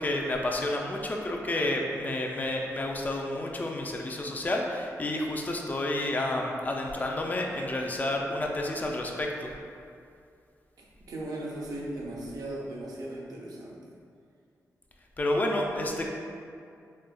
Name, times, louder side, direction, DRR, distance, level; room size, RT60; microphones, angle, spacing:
voice 1, 0.0-9.5 15.2-16.1, left 1 dB, 30° left, 0 dB, 0.3 m, -30 dB
voice 2, 10.8-13.9, right 1 dB, 85° right, -3 dB, 0.5 m, -38 dB
4.1 x 2.3 x 2.2 m, 2.4 s
wide cardioid pair, 95°, 6 cm